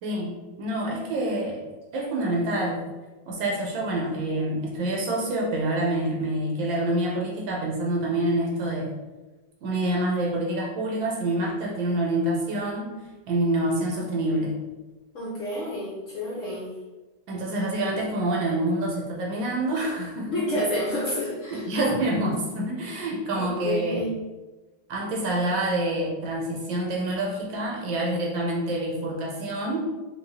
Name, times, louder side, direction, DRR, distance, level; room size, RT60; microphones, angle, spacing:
voice 1, 0.0-1.6 1.9-2.8 3.3-8.9 9.6-12.9 13.3-14.5 17.3-20.4 21.5-24.0 24.9-29.8, right 1 dB, 85° right, -2 dB, 1.7 m, -27 dB
voice 2, 15.1-16.7 20.3-21.6 23.4-24.1, left 1 dB, 60° left, -5 dB, 0.8 m, -29 dB
5.0 x 2.4 x 2.8 m, 1.2 s
omnidirectional pair, 2.1 m